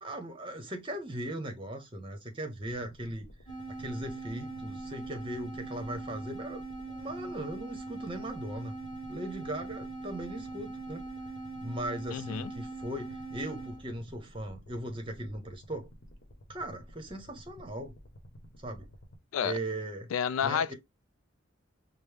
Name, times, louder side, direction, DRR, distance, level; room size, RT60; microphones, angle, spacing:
voice 1, 0.0-3.3 3.8-6.6 6.9-8.7 9.1-11.1 11.6-15.9 16.5-17.9 18.6-18.9 19.4-20.1 20.4-20.7, right 1 dB, 25° right, 0.9 m, -38 dB
sound 1, 2.6-19.2, equal, 50° left, 1.0 m, -53 dB
sound 2, 3.5-13.8, right 3 dB, 20° left, 2.4 m, -41 dB
voice 2, 12.1-12.5 19.3-19.6 20.1-20.7, left 8 dB, 85° left, 0.3 m, -30 dB
5.2 x 2.0 x 3.4 m
head